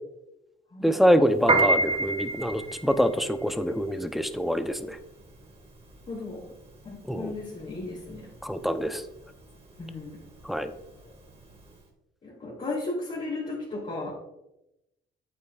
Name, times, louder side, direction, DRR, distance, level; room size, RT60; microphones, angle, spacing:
voice 1, 0.8-5.0 7.1-7.3 8.4-9.0 10.4-10.7, equal, ahead, 9 dB, 0.6 m, -25 dB
Piano, 1.3-11.7, right 2 dB, 35° right, 2.4 m, -29 dB
voice 2, 6.1-6.5 6.8-8.3 9.8-10.1 12.2-14.1, left 2 dB, 40° left, -7 dB, 2.9 m, -35 dB
8.7 x 8.3 x 2.4 m, 0.89 s
cardioid pair, 90°, 20 cm